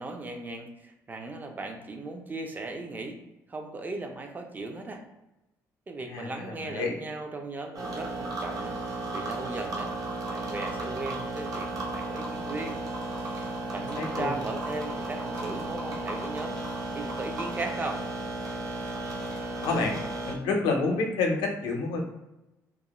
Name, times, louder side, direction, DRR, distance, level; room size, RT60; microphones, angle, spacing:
voice 1, 0.0-3.2 3.5-5.0 5.9-8.8 9.1-9.9 10.3-12.8 13.2-16.6 16.9-18.0, right 2 dB, 25° right, 4 dB, 0.4 m, -37 dB
voice 2, 6.1-6.9 14.0-14.3 19.6-20.0 20.2-22.0, left 3 dB, 90° left, 2 dB, 0.5 m, -28 dB
sound 1, 7.7-20.3, right 2 dB, 50° right, 0.8 m, -34 dB
2.3 x 2.1 x 2.9 m, 0.95 s
cardioid pair, 80°, 7 cm